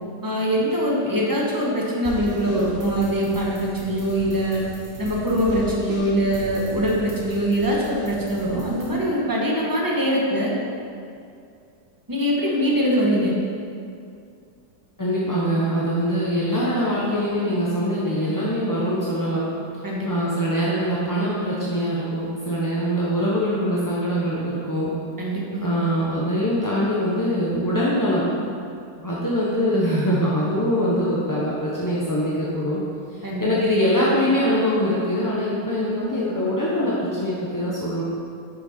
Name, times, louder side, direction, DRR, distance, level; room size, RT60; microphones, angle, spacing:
voice 1, 0.2-4.6 5.0-10.5 12.1-13.3 19.8-20.1 25.2-25.7 33.2-33.5, equal, 15° right, -4 dB, 1.1 m, -23 dB
sound 1, 2.0-8.9, right 2 dB, 35° right, 1.4 m, -38 dB
voice 2, 15.0-19.4 20.0-24.9 25.6-28.3 29.0-32.8 33.4-38.0, equal, 20° left, -7 dB, 0.6 m, -23 dB
8.6 x 6.4 x 4.3 m, 2.4 s
omnidirectional pair, 1.9 m